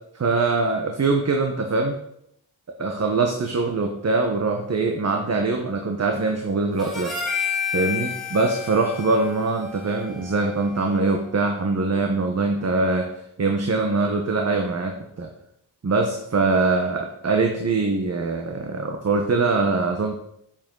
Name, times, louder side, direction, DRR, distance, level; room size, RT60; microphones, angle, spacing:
voice 1, 0.1-2.0 2.8-7.1 7.7-15.3 15.8-20.2, right 3 dB, 40° right, 3 dB, 1.1 m, -23 dB
Harmonica, 6.8-11.3, left 6 dB, ahead, 3.1 m, -31 dB
10.0 x 7.6 x 3.9 m, 0.76 s
cardioid pair, 90°, 41 cm